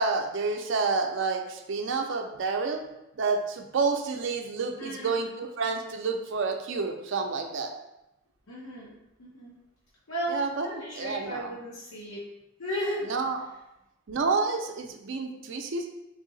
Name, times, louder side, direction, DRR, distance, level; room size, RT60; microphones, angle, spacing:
voice 1, 0.0-2.8 3.2-7.7 10.3-11.5 13.1-13.4 14.1-15.9, right 4 dB, 65° right, 4 dB, 0.5 m, -29 dB
voice 2, 4.8-5.2 8.5-8.9 9.2-9.5 10.1-12.2 12.6-13.1, equal, 90° left, -6 dB, 0.8 m, -35 dB
3.5 x 2.7 x 3.9 m, 0.90 s
head